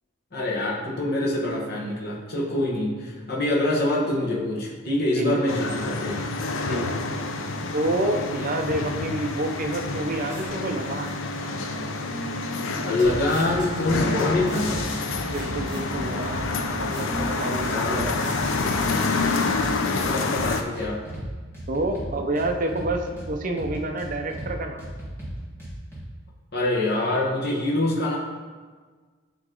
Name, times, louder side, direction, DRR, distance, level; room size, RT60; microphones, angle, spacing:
voice 1, 0.3-6.1 12.8-14.9 17.6-18.1 19.9-21.0 26.5-28.2, left 2 dB, 50° left, -3 dB, 1.2 m, -25 dB
voice 2, 5.2-5.6 6.6-6.9 7.7-11.1 15.3-16.5 16.8-18.3 21.7-24.9, right 1 dB, 40° right, 4 dB, 0.5 m, -28 dB
sound 1, 5.5-20.6, left 3 dB, 65° left, 0.5 m, -28 dB
sound 2, 9.9-20.2, equal, 55° right, 1.6 m, -40 dB
sound 3, 13.0-13.5 13.8-14.8 15.1-16.8 17.1-18.0 18.3-20.0 20.3-21.3 21.5-23.3 23.6-24.5 24.8-26.0, right 1 dB, 10° left, 1.5 m, -37 dB
9.2 x 3.1 x 3.7 m, 1.5 s
head